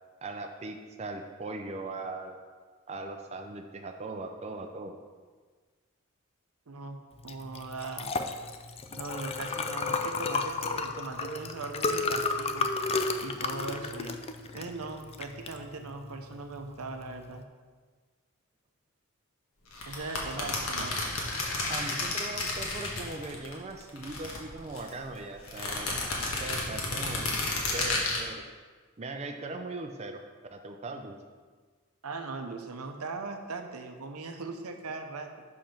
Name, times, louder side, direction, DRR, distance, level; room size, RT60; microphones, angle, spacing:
voice 1, 0.2-2.4 2.9-5.0 20.3-20.9 21.7-27.3 27.7-28.4 29.0-30.2 30.5-31.2, right 2 dB, 30° right, 4 dB, 0.5 m, -39 dB
voice 2, 6.7-7.0 7.2-8.1 8.9-12.7 13.2-14.2 14.5-17.4 19.9-20.9 32.0-35.3, right 3 dB, 90° right, 5 dB, 0.7 m, -39 dB
Liquid, 7.2-17.4, left 4 dB, 25° left, 0.4 m, -33 dB
sound 1, 19.7-23.5 23.8-24.9 25.5-28.2, left 2 dB, 75° left, 1.4 m, -32 dB
5.8 x 5.2 x 5.8 m, 1.5 s
head